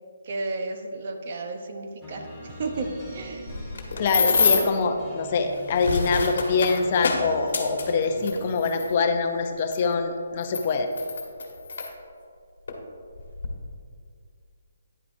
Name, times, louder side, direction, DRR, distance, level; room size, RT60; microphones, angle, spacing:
voice 1, 0.2-3.5, right 3 dB, 45° right, 4 dB, 0.8 m, -33 dB
sound 1, 2.0-8.7, right 1 dB, 5° right, 1.6 m, -43 dB
sound 2, 3.5-4.8 5.6-8.9 9.7-9.8 10.4-11.9 12.7-12.8 13.2-13.5, left 4 dB, 60° left, 1.2 m, -26 dB
voice 2, 3.9-10.9, left 4 dB, 35° left, 5 dB, 0.6 m, -24 dB
9.9 x 8.0 x 2.6 m, 2.3 s
hypercardioid pair, 160°, 0 cm